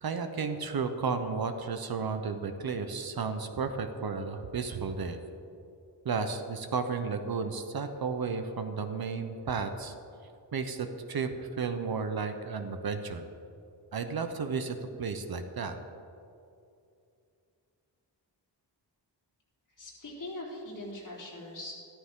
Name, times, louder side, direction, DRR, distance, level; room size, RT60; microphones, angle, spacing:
voice 1, 0.0-5.2 6.0-9.9 10.5-13.2 13.9-15.8, right 5 dB, 55° right, 7 dB, 0.8 m, -33 dB
voice 2, 19.8-21.7, left 1 dB, 45° left, -5 dB, 3.7 m, -41 dB
14.0 x 13.0 x 3.7 m, 2.5 s
wide cardioid pair, 170°, 43 cm